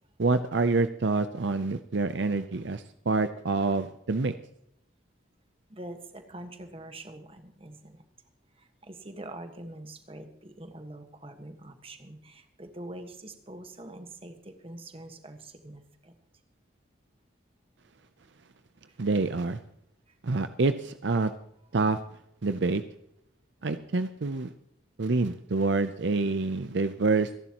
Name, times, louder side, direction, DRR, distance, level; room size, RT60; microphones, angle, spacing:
voice 1, 0.2-4.3 19.0-19.6 20.2-21.3 21.7-22.0 22.4-22.8 23.6-24.5 25.0-27.3, right 3 dB, 65° right, 10 dB, 0.6 m, -27 dB
voice 2, 5.7-8.0 8.6-16.1 18.9-19.0 20.1-20.2, right 1 dB, 30° right, 7 dB, 1.5 m, -44 dB
26.5 x 11.0 x 3.0 m, 0.73 s
head